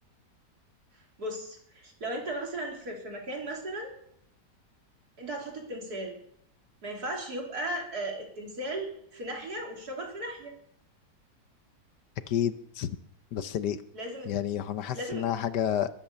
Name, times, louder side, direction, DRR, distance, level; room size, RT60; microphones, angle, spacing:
voice 1, 0.9-4.0 5.2-6.2 6.8-10.5 13.9-14.3 14.9-15.2, right 1 dB, 60° right, 1 dB, 3.9 m, -36 dB
voice 2, 12.3-13.0 13.3-13.8 14.3-15.9, left 10 dB, 75° left, 13 dB, 1.4 m, -30 dB
21.5 x 9.0 x 6.9 m, 0.72 s
omnidirectional pair, 1.8 m